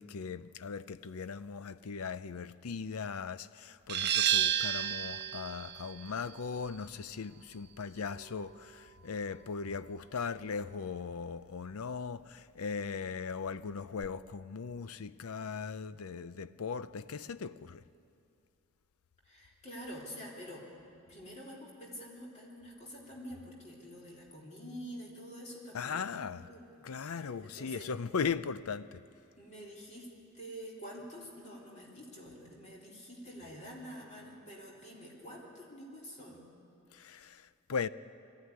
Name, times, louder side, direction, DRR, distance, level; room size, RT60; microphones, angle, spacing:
voice 1, 0.0-17.8 25.7-26.5 26.8-29.0 36.9-37.9, left 5 dB, 90° left, 0.6 m, -38 dB
sound 1, 3.9-9.3, right 10 dB, 50° right, 0.6 m, -33 dB
voice 2, 19.2-20.7 21.1-27.9 29.4-30.1 30.3-36.4, equal, 30° left, 3.6 m, -47 dB
21.0 x 14.5 x 9.7 m
head